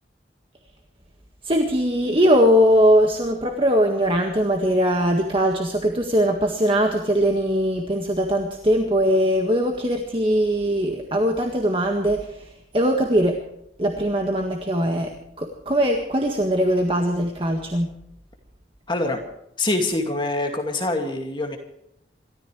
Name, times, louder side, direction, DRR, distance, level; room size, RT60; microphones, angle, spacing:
voice 1, 1.4-13.4 13.8-17.9, equal, 30° right, 2 dB, 1.7 m, -21 dB
voice 2, 18.9-19.2 19.6-21.6, left 2 dB, 25° left, 3 dB, 2.3 m, -24 dB
28.0 x 14.5 x 3.3 m, 0.77 s
head